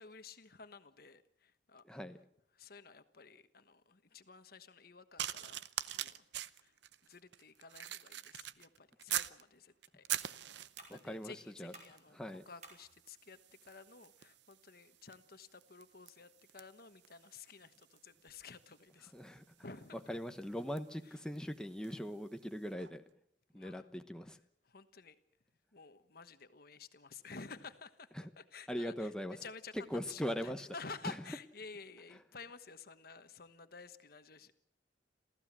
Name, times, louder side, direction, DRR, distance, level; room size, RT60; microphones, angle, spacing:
voice 1, 0.0-1.8 2.5-6.3 6.6-6.8 7.0-10.0 10.9-12.2 12.4-19.1 19.6-20.0 21.0-21.2 23.5-23.9 24.6-25.2 25.7-28.1 28.4-34.5, left 4 dB, 55° left, 10 dB, 1.3 m, -52 dB
voice 2, 1.8-2.2 10.9-11.3 11.6-11.7 12.1-12.4 19.1-19.4 20.1-23.0 23.5-24.4 28.2-28.3 28.7-29.4 29.9-30.7 31.0-31.1, equal, 5° left, 6 dB, 1.0 m, -40 dB
Matchbox Lighting Match Stick, 5.2-9.4 9.8-11.1 11.8-12.1 12.4-22.1 22.8-22.9, right 11 dB, 70° right, 0.7 m, -44 dB
sound 1, 9.7-16.2, right 3 dB, 40° right, 5.4 m, -63 dB
27.5 x 15.0 x 7.5 m, 0.76 s
head